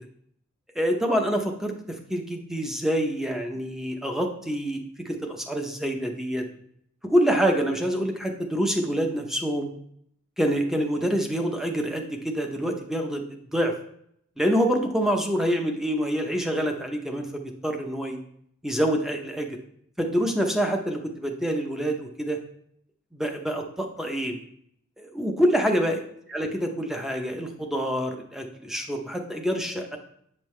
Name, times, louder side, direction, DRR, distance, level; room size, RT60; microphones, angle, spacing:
voice 1, 0.7-6.4 7.0-9.7 10.4-13.7 14.4-18.2 18.6-19.6 20.0-22.4 23.1-24.4 25.0-26.0 26.3-30.0, equal, ahead, 3 dB, 0.7 m, -26 dB
8.0 x 5.3 x 3.2 m, 0.69 s
head